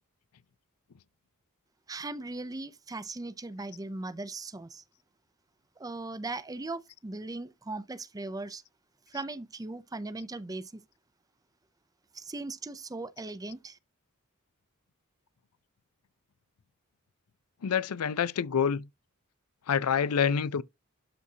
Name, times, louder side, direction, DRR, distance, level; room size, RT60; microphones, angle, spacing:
voice 1, 1.9-4.8 5.8-8.6 9.1-10.7 12.1-13.8, right 2 dB, 15° right, 0.5 m, -38 dB
voice 2, 17.6-18.9 19.7-20.6, left 7 dB, 85° left, 0.5 m, -27 dB
12.0 x 4.1 x 2.8 m
head